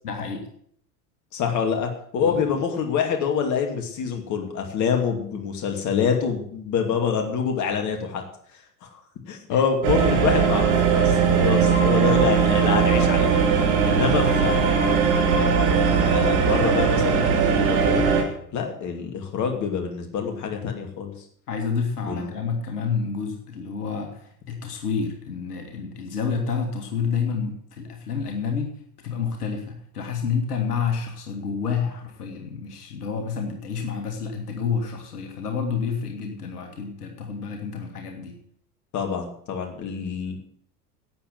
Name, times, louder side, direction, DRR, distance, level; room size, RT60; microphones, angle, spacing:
voice 1, 0.0-0.5 2.2-2.4 9.5-9.6 10.1-10.2 11.0-11.3 21.5-38.4, left 6 dB, 70° left, 3 dB, 2.2 m, -29 dB
voice 2, 1.3-8.2 8.8-8.9 9.3-13.3 13.6-15.0 15.3-18.0 18.5-21.1 22.0-22.3 38.9-40.4, left 6 dB, 35° left, 3 dB, 2.6 m, -26 dB
sound 1, 9.8-18.2, right 6 dB, 50° right, 2.9 m, -19 dB
11.5 x 8.0 x 7.8 m, 0.65 s
figure-of-eight pair, 80°, 48 cm